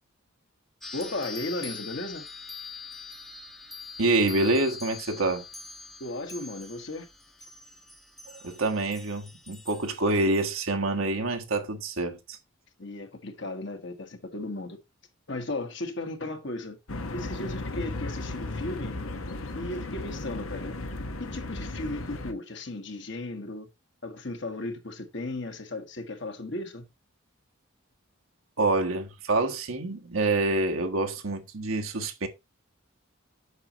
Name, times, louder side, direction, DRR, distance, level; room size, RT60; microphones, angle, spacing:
sound 1, 0.8-10.5, left 4 dB, ahead, 0.8 m, -44 dB
voice 1, 0.9-2.3 6.0-7.1 12.8-14.8 15.3-16.8 17.1-19.0 19.5-20.8 21.2-23.7 24.0-26.9, left 2 dB, 60° left, 1.5 m, -35 dB
voice 2, 4.0-5.5 8.4-12.4 28.6-32.3, right 2 dB, 85° right, 1.5 m, -27 dB
sound 2, 16.9-22.3, left 2 dB, 90° left, 1.2 m, -35 dB
8.2 x 6.4 x 2.9 m
head